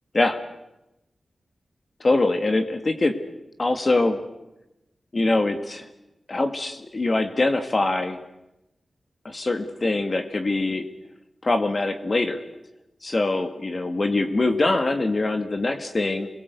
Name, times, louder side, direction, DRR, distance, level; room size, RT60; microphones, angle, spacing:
voice 1, 2.0-3.1 3.6-4.2 5.1-5.9 6.3-8.2 9.2-10.8 11.4-12.4 13.0-16.3, left 2 dB, 40° left, 7 dB, 2.0 m, -23 dB
29.0 x 22.0 x 8.3 m, 0.93 s
wide cardioid pair, 110°, 0 cm